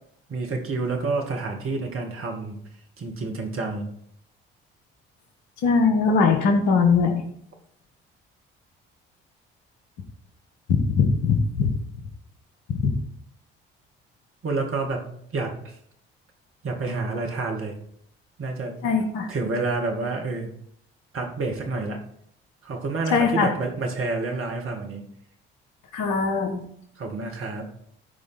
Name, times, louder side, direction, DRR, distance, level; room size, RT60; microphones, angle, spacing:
voice 1, 0.3-2.6 3.0-3.9 14.4-15.0 15.3-15.7 16.6-17.7 18.4-18.8 19.3-20.5 21.1-22.0 22.6-25.0 27.0-27.7, right 3 dB, 45° right, 2 dB, 2.3 m, -28 dB
voice 2, 5.6-7.2 10.7-11.7 12.7-12.9 18.8-19.3 23.1-23.5 25.9-26.6, left 5 dB, 70° left, 5 dB, 1.5 m, -21 dB
13.0 x 4.9 x 4.3 m, 0.68 s
figure-of-eight pair, 45°, 29 cm